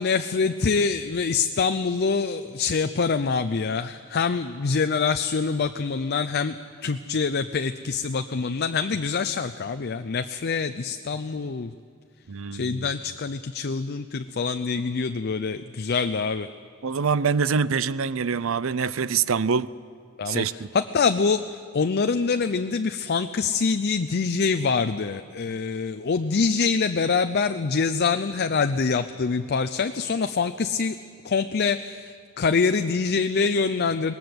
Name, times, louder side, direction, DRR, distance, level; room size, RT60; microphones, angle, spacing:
voice 1, 0.0-6.5 6.8-11.7 12.5-16.5 20.2-20.4 20.7-21.4 21.7-31.0 31.2-34.1, left 5 dB, 50° left, 9 dB, 0.5 m, -25 dB
voice 2, 12.3-12.9 16.8-19.7 20.3-20.7, right 6 dB, 75° right, 17 dB, 0.6 m, -25 dB
20.0 x 19.5 x 7.9 m, 2.2 s
head